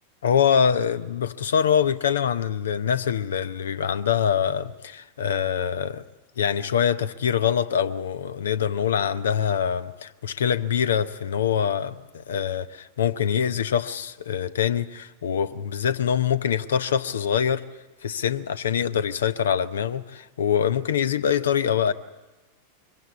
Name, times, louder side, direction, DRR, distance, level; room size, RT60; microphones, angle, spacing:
voice 1, 0.2-6.0 6.4-17.6 18.0-21.9, left 8 dB, 65° left, 0.7 m, -24 dB
23.0 x 16.0 x 8.3 m
figure-of-eight pair, 90°, 0 cm